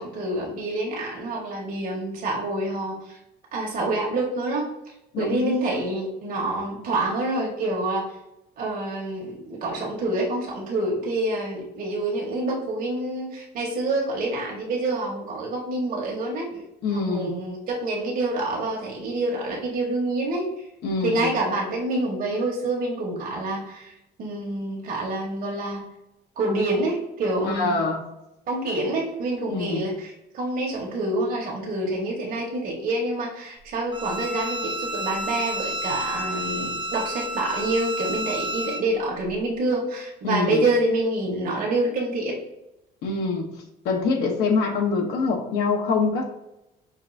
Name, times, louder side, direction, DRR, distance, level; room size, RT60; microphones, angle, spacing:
voice 1, 0.0-3.2 3.5-8.1 8.6-16.6 16.9-20.5 21.0-25.8 26.4-27.8 28.5-42.4, right 2 dB, 55° right, -2 dB, 1.2 m, -27 dB
voice 2, 5.1-5.8 16.8-17.3 20.8-21.3 27.4-28.0 29.5-29.8 40.2-40.6 43.0-43.5 43.8-46.3, left 4 dB, 80° left, 2 dB, 0.9 m, -25 dB
Bowed string instrument, 33.9-38.8, equal, 30° right, 0.6 m, -30 dB
5.3 x 2.5 x 2.6 m, 0.89 s
cardioid pair, 110°, 17 cm